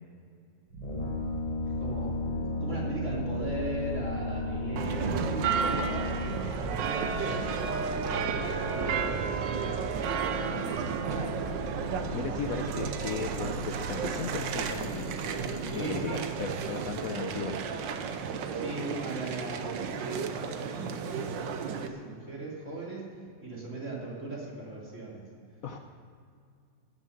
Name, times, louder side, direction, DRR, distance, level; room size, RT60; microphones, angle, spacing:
sound 1, 0.7-19.7, right 1 dB, 65° right, 1.8 m, -40 dB
Brass instrument, 0.8-6.6, left 2 dB, 25° left, 1.2 m, -34 dB
voice 1, 1.8-2.2 2.6-6.2 6.5-9.8 10.5-11.1 15.6-16.3 18.5-23.1 23.4-25.3, right 2 dB, 40° right, -4 dB, 3.4 m, -39 dB
sound 2, 4.8-21.9, right 6 dB, 85° right, 1.5 m, -33 dB
voice 2, 12.1-15.1 15.7-17.6 25.6-25.8, left 6 dB, 60° left, 5 dB, 1.0 m, -36 dB
17.0 x 7.2 x 6.5 m, 2.3 s
omnidirectional pair, 2.0 m